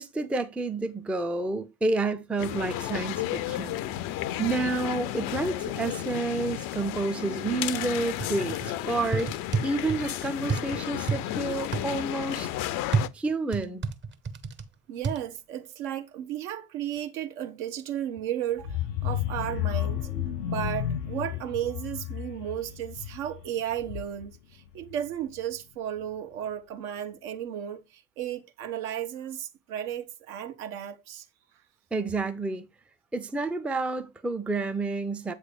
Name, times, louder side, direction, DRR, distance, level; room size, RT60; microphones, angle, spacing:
voice 1, 0.0-4.1 4.4-9.3 9.6-12.5 13.1-13.9 31.9-32.6 33.1-35.3, right 3 dB, 5° right, 0.6 m, -29 dB
sound 1, 2.4-13.1, left 13 dB, 45° left, 0.6 m, -33 dB
sound 2, 8.2-8.7 9.1-10.0 10.5-11.2 11.7-11.9 12.9-14.7 15.0-15.2, right 4 dB, 25° right, 0.9 m, -29 dB
voice 2, 14.9-20.1 20.5-31.2, right 10 dB, 60° right, 1.3 m, -34 dB
sound 3, 18.6-24.4 24.7-25.0 25.3-25.4, left 11 dB, 75° left, 0.8 m, -32 dB
8.0 x 3.3 x 5.2 m
figure-of-eight pair, 60°, 48 cm